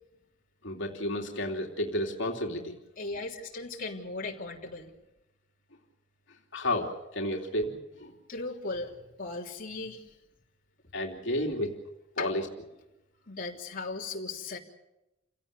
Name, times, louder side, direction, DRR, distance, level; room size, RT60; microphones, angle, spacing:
voice 1, 0.6-2.8 6.5-8.1 10.9-11.7 12.2-12.4, left 1 dB, 65° left, 1 dB, 3.0 m, -31 dB
voice 2, 3.0-4.9 8.3-10.2 12.2-12.3 13.3-14.6, left 3 dB, 45° left, -1 dB, 3.3 m, -37 dB
29.0 x 17.0 x 6.8 m, 0.95 s
head